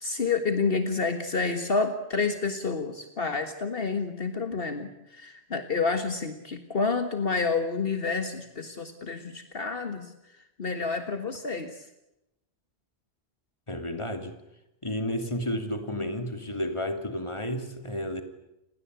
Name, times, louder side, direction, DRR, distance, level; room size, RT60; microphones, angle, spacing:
voice 1, 0.0-10.1 10.6-11.9, left 4 dB, 60° left, 8 dB, 1.9 m, -29 dB
voice 2, 13.7-14.4 14.8-18.2, left 1 dB, 30° left, 7 dB, 2.9 m, -31 dB
29.0 x 21.0 x 8.3 m, 0.89 s
omnidirectional pair, 1.1 m